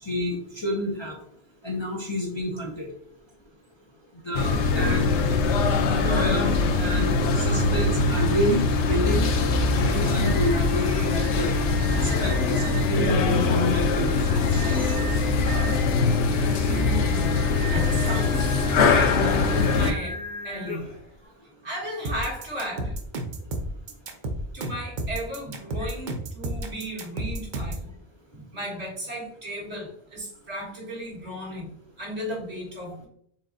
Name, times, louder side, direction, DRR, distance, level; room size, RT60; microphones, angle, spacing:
voice 1, 0.0-1.2 1.6-2.9 4.2-5.1 6.0-9.3 9.7-11.5 11.9-14.3 14.5-15.7 25.8-25.9, left 1 dB, 30° left, -2 dB, 0.6 m, -29 dB
sound 1, 4.3-19.9, left 3 dB, 90° left, 0.9 m, -22 dB
Singing, 9.4-21.1, equal, 50° left, 1.7 m, -38 dB
voice 2, 16.7-20.9 21.6-23.0 24.5-27.9 28.3-33.1, equal, 70° right, -5 dB, 1.9 m, -35 dB
sound 2, 22.0-27.9, right 1 dB, 50° right, 0.7 m, -31 dB
4.6 x 3.9 x 2.6 m, 0.66 s
omnidirectional pair, 1.1 m